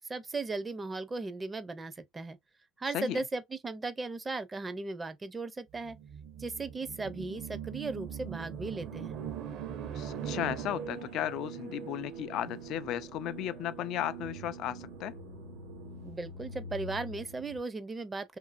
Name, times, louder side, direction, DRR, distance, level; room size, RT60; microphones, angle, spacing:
voice 1, 0.1-2.4 2.8-6.0 6.4-9.2 16.0-18.4, right 3 dB, 20° right, 0.5 m, -37 dB
sound 1, 5.7-11.2, right 9 dB, 60° right, 0.7 m, -41 dB
sound 2, 7.6-17.6, right 4 dB, 90° right, 1.0 m, -45 dB
voice 2, 9.9-15.1, left 12 dB, 60° left, 0.3 m, -35 dB
2.7 x 2.5 x 2.4 m
supercardioid pair, 105°, 0 cm